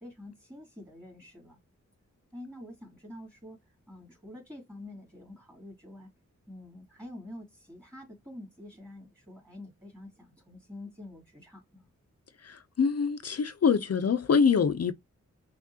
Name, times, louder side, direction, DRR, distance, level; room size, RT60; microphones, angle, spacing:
voice 1, 0.0-1.6 2.3-6.1 6.5-11.9, left 1 dB, 10° right, 2.5 m, -47 dB
voice 2, 12.4-14.9, left 6 dB, 55° left, 0.6 m, -25 dB
5.9 x 2.4 x 2.8 m
wide cardioid pair, 90°, 30 cm